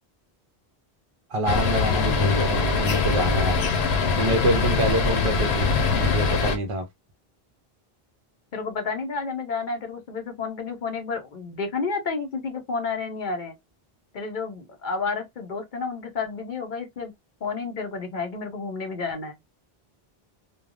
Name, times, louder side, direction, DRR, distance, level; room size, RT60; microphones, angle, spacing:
voice 1, 1.3-3.7 4.2-6.8, right 1 dB, 45° right, 0.5 m, -26 dB
sound 1, 1.5-6.6, left 4 dB, 90° left, 0.9 m, -23 dB
voice 2, 8.5-13.5 14.1-17.1 17.4-19.3, left 4 dB, 55° left, 0.8 m, -30 dB
3.2 x 2.2 x 2.4 m
omnidirectional pair, 1.0 m